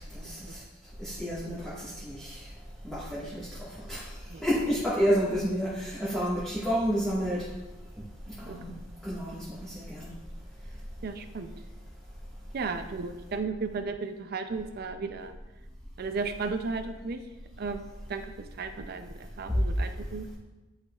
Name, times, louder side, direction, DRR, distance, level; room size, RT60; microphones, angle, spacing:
voice 1, 0.1-0.6 1.0-2.4 2.8-4.1 4.4-7.4 8.4-8.7 9.0-10.1, equal, 5° left, -10 dB, 1.4 m, -30 dB
voice 2, 11.0-11.5 12.5-15.3 16.0-17.2 17.6-20.3, right 4 dB, 50° right, 7 dB, 0.4 m, -35 dB
10.5 x 4.9 x 2.3 m, 1.2 s
head